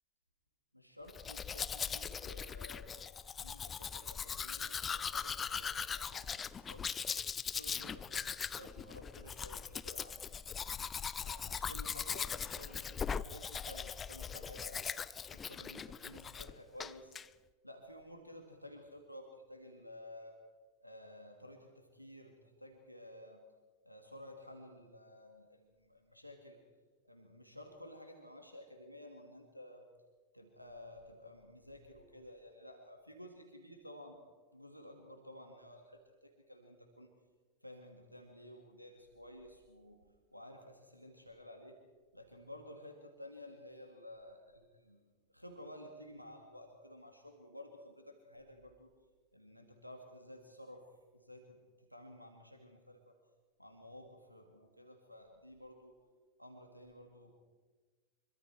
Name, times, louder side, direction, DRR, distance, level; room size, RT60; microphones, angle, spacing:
voice 1, 0.7-6.9 7.5-10.3 11.2-14.9 15.3-17.2 17.6-20.4 20.8-23.5 23.8-26.6 27.0-29.9 30.3-34.2 34.5-37.1 37.6-40.0 40.3-41.8 42.1-48.9 49.3-53.1 53.6-56.0 56.4-57.3, left 1 dB, 90° left, 3 dB, 2.4 m, -53 dB
Domestic sounds home sounds, 1.1-16.5 16.8-17.3, left 6 dB, 20° left, 0.6 m, -40 dB
25.5 x 23.5 x 4.6 m, 1.4 s
figure-of-eight pair, 90°, 0 cm